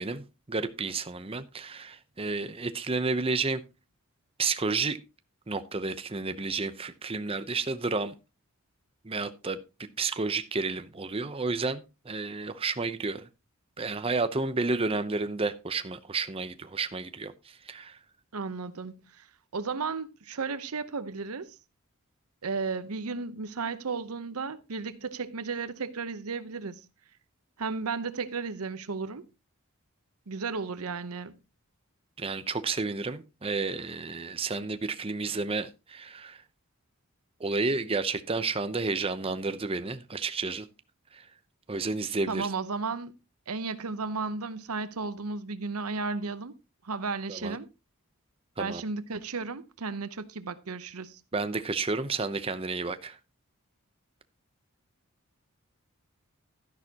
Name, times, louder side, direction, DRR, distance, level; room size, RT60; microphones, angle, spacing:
voice 1, 0.0-3.6 4.4-5.0 5.5-8.1 9.0-13.3 13.8-18.0 32.2-36.4 37.4-40.7 41.1-41.3 41.7-42.5 47.3-47.6 48.6-48.8 51.3-53.2, right 3 dB, 25° right, 0.7 m, -31 dB
voice 2, 18.3-19.3 19.5-21.6 22.4-26.8 27.6-29.3 30.3-31.4 42.3-43.1 43.5-46.6 46.8-47.7 48.6-51.2, right 4 dB, 90° right, 0.8 m, -34 dB
12.5 x 10.5 x 2.9 m
head